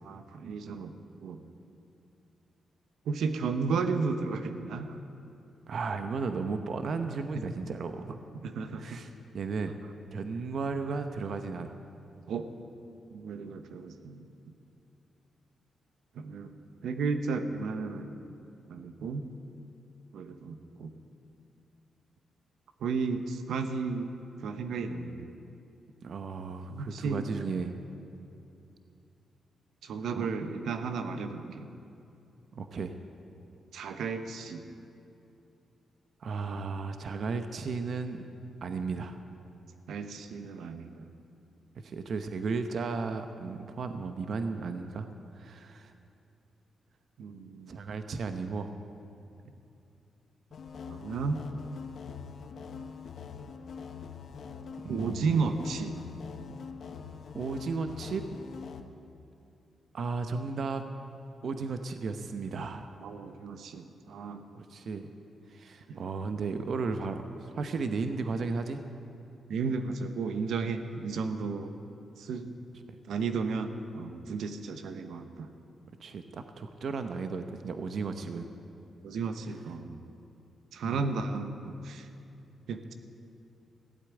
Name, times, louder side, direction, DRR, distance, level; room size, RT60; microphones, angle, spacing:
voice 1, 0.0-0.9 1.2-1.4 3.1-5.0 8.4-9.0 12.3-12.5 13.1-14.3 16.2-16.5 16.8-18.2 18.7-19.3 20.1-20.9 22.8-24.1 24.4-25.3 26.7-27.2 29.8-31.7 33.7-34.6 39.9-41.1 47.2-47.8 50.9-51.4 54.9-56.0 63.0-64.4 65.9-66.0 69.5-71.7 72.2-72.5 73.1-75.5 79.0-80.0 80.7-82.1 82.7-82.9, right 4 dB, 85° right, 8 dB, 0.9 m, -33 dB
voice 2, 5.7-8.2 8.6-9.7 10.1-11.7 26.0-27.8 30.2-30.3 32.5-32.9 36.2-38.3 38.6-39.2 41.8-45.1 45.4-45.9 47.7-48.7 54.8-55.6 57.3-58.3 59.9-60.8 61.4-62.9 64.5-65.1 65.5-68.8 76.0-78.5 80.8-81.1, right 4 dB, 60° right, 8 dB, 0.8 m, -34 dB
sound 1, 50.5-58.8, left 6 dB, 60° left, 0.9 m, -44 dB
16.0 x 8.3 x 9.1 m, 2.7 s
cardioid pair, 120°, 0 cm